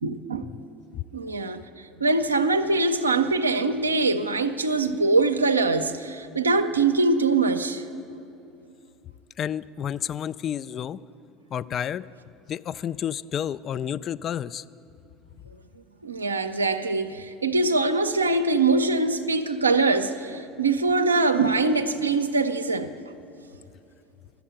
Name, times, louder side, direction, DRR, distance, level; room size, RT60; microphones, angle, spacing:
voice 1, 0.0-0.5 1.1-7.8 16.0-22.9, right 3 dB, 85° right, 0.4 m, -23 dB
voice 2, 9.4-11.0 11.5-12.0 12.5-14.6, left 9 dB, 40° left, 0.3 m, -30 dB
12.0 x 7.0 x 8.7 m
figure-of-eight pair, 70°, 0 cm